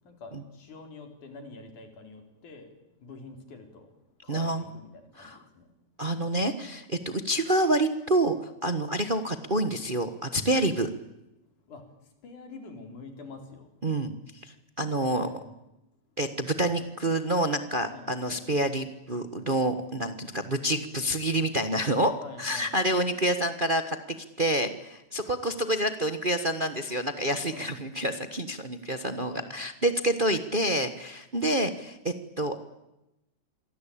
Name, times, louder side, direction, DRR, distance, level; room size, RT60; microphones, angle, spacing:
voice 1, 0.0-2.7 3.0-5.7 7.0-7.3 11.6-13.8 15.0-15.5 17.9-18.4 22.2-22.7 27.5-27.8 29.3-29.5, left 3 dB, 85° left, 5 dB, 5.3 m, -47 dB
voice 2, 4.3-4.7 5.2-5.4 6.0-10.9 13.8-14.1 14.4-15.3 16.2-22.1 22.4-24.0 24.4-32.6, right 1 dB, 45° right, 9 dB, 0.6 m, -28 dB
27.0 x 23.0 x 8.7 m, 0.94 s
omnidirectional pair, 3.4 m